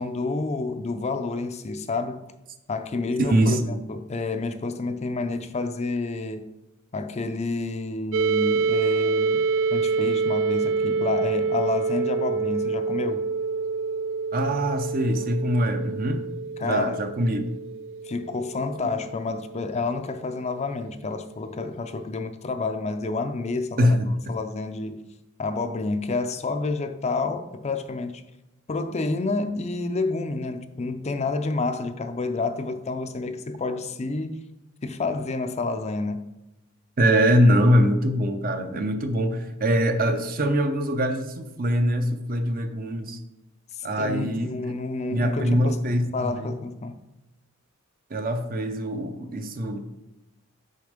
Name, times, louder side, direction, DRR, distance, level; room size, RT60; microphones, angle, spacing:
voice 1, 0.0-2.2 2.7-6.5 6.9-9.4 9.7-13.3 16.6-17.0 17.3-17.4 18.0-24.0 24.3-25.1 25.4-28.2 28.7-34.4 34.8-36.3 43.7-45.8 46.1-46.9, left 3 dB, 30° left, 0.5 m, -29 dB
voice 2, 3.2-3.8 14.3-16.3 16.6-17.4 18.8-18.9 23.8-24.1 37.0-43.2 43.8-44.5 45.1-46.5 48.1-49.8, equal, 45° right, 0.7 m, -23 dB
sound 1, 8.1-19.8, right 4 dB, 65° right, 0.3 m, -27 dB
6.5 x 5.2 x 5.1 m
head